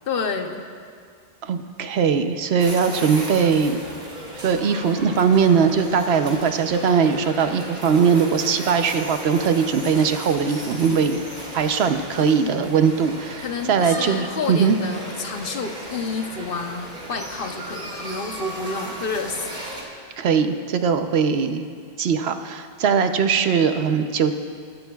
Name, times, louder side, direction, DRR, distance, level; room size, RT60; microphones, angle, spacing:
voice 1, 0.1-0.7 12.2-12.7 13.4-19.5, left 4 dB, 60° left, 5 dB, 1.0 m, -29 dB
voice 2, 1.4-3.8 4.4-11.2 11.5-14.8 20.2-21.7 22.0-24.3, right 6 dB, 80° right, 8 dB, 1.0 m, -20 dB
sound 1, 2.6-19.8, right 1 dB, 50° right, 2.3 m, -36 dB
21.5 x 11.5 x 2.3 m, 2.2 s
omnidirectional pair, 1.1 m